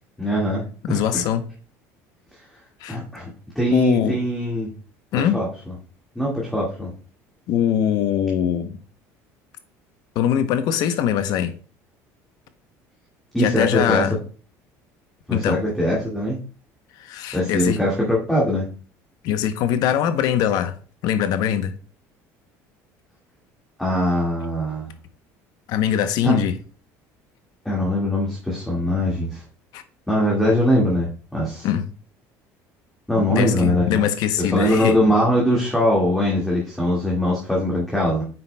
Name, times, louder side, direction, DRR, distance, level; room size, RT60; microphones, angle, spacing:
voice 1, 0.2-1.3 2.9-3.3 3.5-4.7 5.3-5.5 6.1-6.9 13.3-14.0 15.3-16.4 17.3-18.7 23.8-24.9 26.2-26.4 27.6-29.4 30.1-31.7 33.1-34.1 34.4-38.2, equal, 5° left, 1.8 m, -21 dB
voice 2, 0.8-1.4 2.8-3.0 3.7-4.2 5.1-5.4 7.5-8.8 10.2-11.5 13.4-14.2 15.3-15.6 17.0-17.8 19.2-20.7 21.0-21.7 25.7-26.6 29.7-29.8 31.6-31.8 33.3-35.0, left 9 dB, 65° left, 0.8 m, -22 dB
7.7 x 5.8 x 2.2 m
supercardioid pair, 110°, 7 cm